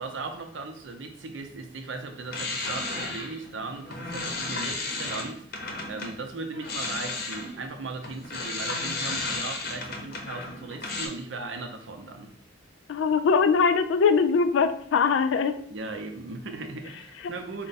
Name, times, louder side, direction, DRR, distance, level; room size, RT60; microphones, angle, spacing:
voice 1, 0.0-12.3 15.7-17.7, right 3 dB, 75° right, 5 dB, 0.6 m, -38 dB
sound 1, 2.2-6.2 6.5-11.1, left 3 dB, 50° left, 0.7 m, -33 dB
voice 2, 12.9-15.6 17.2-17.3, left 5 dB, 75° left, 10 dB, 0.3 m, -22 dB
4.5 x 2.1 x 4.0 m, 0.63 s
head